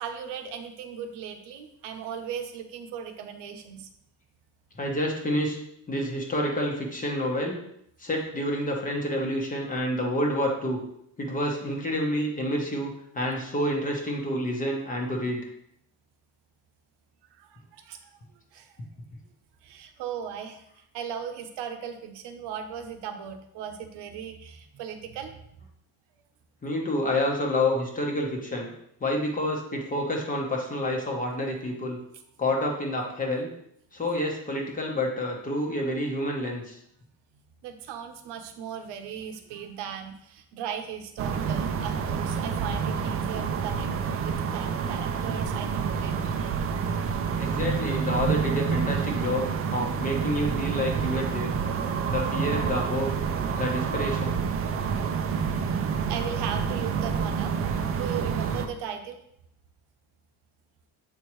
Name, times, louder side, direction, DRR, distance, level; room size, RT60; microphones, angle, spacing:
voice 1, 0.0-3.9 17.4-18.0 18.5-18.7 19.6-20.6 20.9-25.4 37.6-43.9 44.2-46.7 56.1-59.2, right 8 dB, 90° right, 6 dB, 0.9 m, -37 dB
voice 2, 4.8-5.6 5.9-7.6 8.0-10.8 11.2-15.4 26.6-28.7 29.0-32.0 32.4-33.5 33.9-36.8 47.4-49.5 49.7-51.5 52.1-53.1 53.6-54.4, left 1 dB, 20° left, 0 dB, 1.0 m, -28 dB
sound 1, 41.2-58.7, right 6 dB, 35° right, 0.5 m, -28 dB
7.4 x 4.5 x 3.1 m, 0.74 s
cardioid pair, 170°, 40 cm